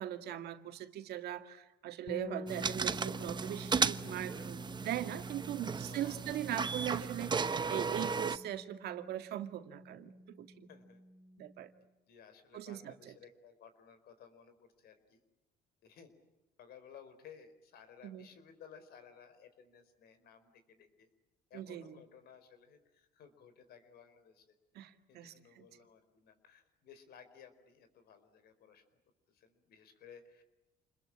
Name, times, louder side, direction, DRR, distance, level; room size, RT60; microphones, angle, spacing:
voice 1, 0.0-10.7 11.4-11.7 12.5-12.9 18.0-18.3 21.5-22.0 24.8-25.6, right 12 dB, 75° right, 7 dB, 2.0 m, -40 dB
sound 1, 2.1-11.8, left 1 dB, 50° left, 4.3 m, -49 dB
sound 2, 2.5-8.4, right 5 dB, 25° right, 0.9 m, -35 dB
voice 2, 5.8-6.3 10.7-11.0 12.1-15.2 15.8-16.1 16.6-21.1 21.5-24.5 25.1-28.8 29.3-30.4, left 7 dB, 70° left, 10 dB, 4.6 m, -58 dB
28.5 x 21.5 x 8.7 m, 1.1 s
cardioid pair, 110°, 17 cm